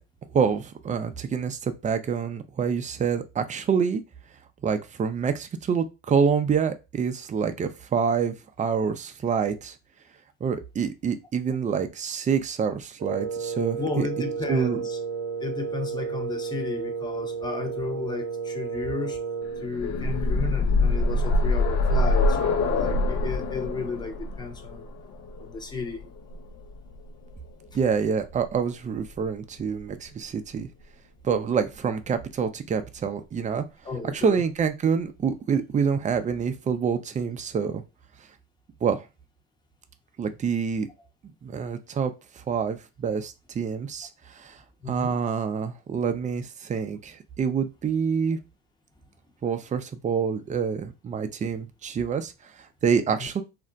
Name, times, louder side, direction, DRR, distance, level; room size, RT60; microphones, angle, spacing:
voice 1, 0.3-4.0 4.6-9.8 10.4-14.1 14.5-14.8 27.7-30.7 31.2-33.6 34.1-37.8 38.8-39.1 40.2-40.9 41.4-44.6 44.9-48.4 49.4-53.4, right 6 dB, 25° right, 0.5 m, -27 dB
Wind instrument woodwind instrument, 13.0-19.7, right 5 dB, 55° right, 0.7 m, -32 dB
voice 2, 13.8-15.0 15.4-19.2 19.6-24.9 25.4-26.0 33.8-34.4 44.8-45.2 53.2-53.3, left 4 dB, 15° left, 0.8 m, -33 dB
sound 1, 19.5-27.3 28.5-28.6 29.0-29.1, left 2 dB, 60° left, 0.7 m, -25 dB
2.5 x 2.1 x 3.8 m
hypercardioid pair, 75°, 31 cm